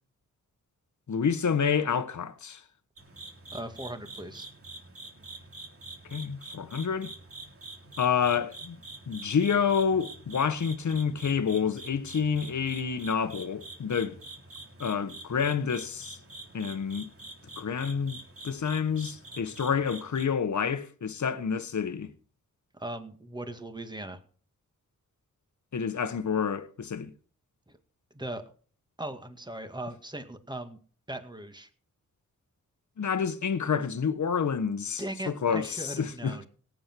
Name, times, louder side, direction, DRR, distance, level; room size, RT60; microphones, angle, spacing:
voice 1, 1.1-2.6 6.1-7.1 8.0-8.8 9.1-14.2 14.8-16.2 16.5-17.1 17.6-18.2 18.4-22.1 25.7-27.1 33.0-36.5, left 6 dB, 60° left, 1.3 m, -28 dB
sound 1, 3.0-20.3, right 2 dB, 40° right, 3.4 m, -46 dB
voice 2, 3.5-4.5 22.7-24.2 28.1-28.4 29.0-30.8 31.1-31.7 35.0-36.5, right 1 dB, 15° right, 2.1 m, -38 dB
17.5 x 7.8 x 4.6 m
cardioid pair, 60°, 33 cm